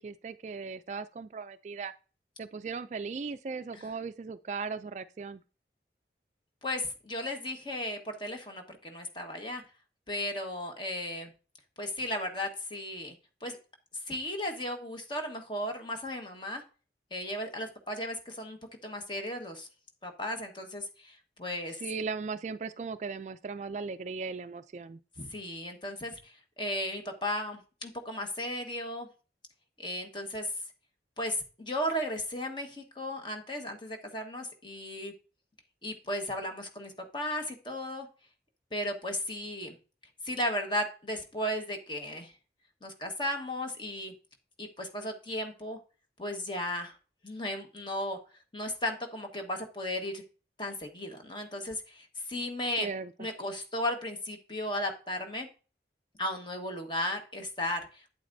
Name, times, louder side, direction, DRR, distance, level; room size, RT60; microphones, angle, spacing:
voice 1, 0.0-1.9 2.4-5.4 21.8-25.0 52.8-53.3, right 4 dB, 40° right, 0.3 m, -37 dB
voice 2, 6.6-9.6 10.1-11.3 11.8-13.1 13.4-13.6 14.1-16.6 17.1-19.7 20.0-21.8 25.2-29.1 29.8-30.5 31.2-35.1 35.8-38.1 38.7-39.7 40.2-42.3 42.8-44.1 44.6-45.8 46.2-47.0 47.2-48.2 48.5-50.2 50.6-52.9 53.2-55.5 56.2-58.1, left 1 dB, 25° left, 1.4 m, -35 dB
8.7 x 8.3 x 2.7 m
head